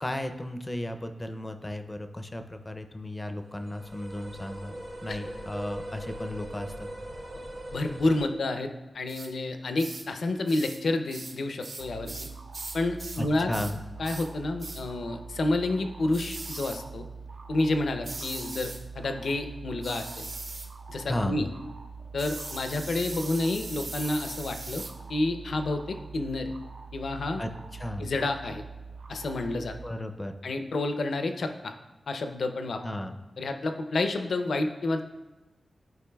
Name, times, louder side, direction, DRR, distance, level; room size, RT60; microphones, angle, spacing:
voice 1, 0.0-4.7 5.0-6.9 13.2-13.8 21.1-21.4 27.4-28.1 29.8-30.3 32.8-33.2, left 1 dB, 15° left, 7 dB, 0.4 m, -34 dB
sound 1, 3.5-8.2, right 1 dB, 70° right, 1.8 m, -40 dB
voice 2, 7.7-12.3 12.7-13.5 14.0-17.1 17.5-20.3 20.9-21.5 22.1-24.8 25.1-26.5 26.9-27.4 28.0-28.6 29.1-29.8 30.4-31.7 32.1-32.8 33.4-35.0, left 2 dB, 70° left, 6 dB, 0.5 m, -29 dB
sound 2, 9.1-9.3 9.8-10.1 10.5-10.8 11.1-13.3 13.5-13.8 14.0-14.3 14.6-14.9 16.1-16.8 18.0-18.8 19.8-20.7 22.2-25.0, right 3 dB, 40° right, 0.6 m, -40 dB
sound 3, 11.8-29.9, right 4 dB, 85° right, 0.7 m, -44 dB
11.5 x 4.5 x 2.3 m, 1.1 s
wide cardioid pair, 140°, 0 cm